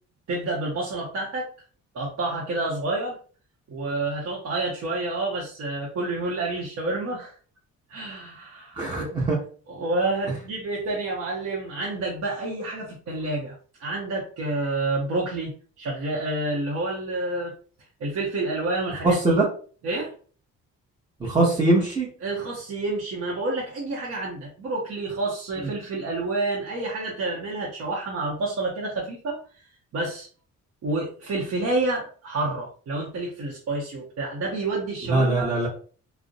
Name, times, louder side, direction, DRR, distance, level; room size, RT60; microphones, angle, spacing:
voice 1, 0.3-1.5 1.9-3.2 3.7-7.3 7.9-9.1 9.7-17.5 18.0-19.4 19.8-20.1 22.2-29.7 29.9-30.3 30.8-35.5, right 2 dB, 60° right, -4 dB, 0.7 m, -29 dB
voice 2, 8.8-9.4 19.0-19.5 21.2-22.1 25.6-25.7 35.0-35.7, right 2 dB, 15° right, -6 dB, 0.8 m, -22 dB
2.5 x 2.0 x 2.5 m, 0.41 s
cardioid pair, 90°, 30 cm